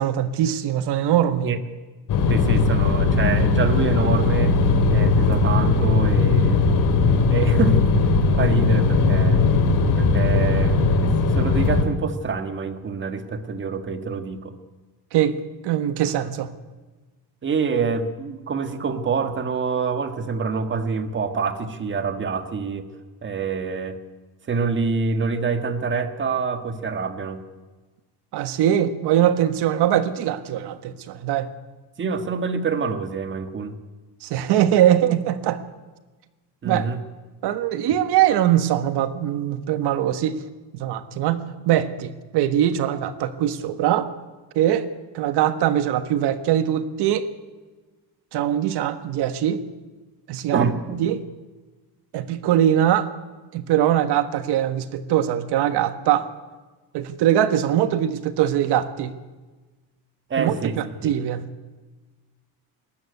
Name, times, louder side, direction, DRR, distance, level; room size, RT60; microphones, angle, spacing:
voice 1, 0.0-1.5 15.1-15.4 15.6-16.5 28.3-31.5 34.2-35.6 36.6-36.9 37.4-40.4 40.8-44.1 44.5-44.9 45.1-47.3 48.3-49.6 50.3-50.7 51.0-51.2 52.1-53.1 53.5-56.3 56.9-59.1 60.4-61.4, right 11 dB, 70° right, 11 dB, 1.5 m, -22 dB
sound 1, 2.1-11.8, left 4 dB, 50° left, 2.3 m, -18 dB
voice 2, 2.3-4.6 4.9-6.6 7.3-9.4 10.0-14.5 17.4-22.9 23.2-24.0 24.5-27.4 32.0-33.7 36.6-37.0 50.5-51.0 60.3-60.7 61.0-61.1, right 5 dB, 30° right, 8 dB, 1.5 m, -26 dB
20.5 x 13.5 x 9.5 m, 1.3 s
cardioid pair, 170°, 41 cm